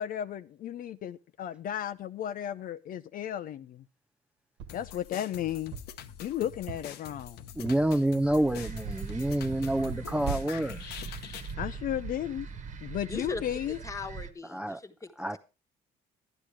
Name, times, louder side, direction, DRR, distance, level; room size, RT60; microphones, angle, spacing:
voice 1, 0.0-3.8 4.7-5.8 6.2-7.4 11.6-12.5 12.8-13.8, left 10 dB, 55° left, 0.6 m, -34 dB
sound 1, 4.6-4.9 5.7-6.0 6.7-7.1 7.7-8.0 8.9-9.2 9.9-10.2 10.8-10.9 11.1-11.2, right 6 dB, 85° right, 1.7 m, -44 dB
sound 2, 4.7-11.5, left 9 dB, 75° left, 1.0 m, -45 dB
voice 2, 7.5-11.0 14.5-14.8 15.2-15.4, right 1 dB, 5° right, 0.5 m, -28 dB
sound 3, 8.2-14.3, right 5 dB, 45° right, 1.3 m, -40 dB
voice 3, 13.1-15.4, left 3 dB, 20° left, 1.3 m, -40 dB
12.0 x 10.0 x 4.7 m
cardioid pair, 110°, 17 cm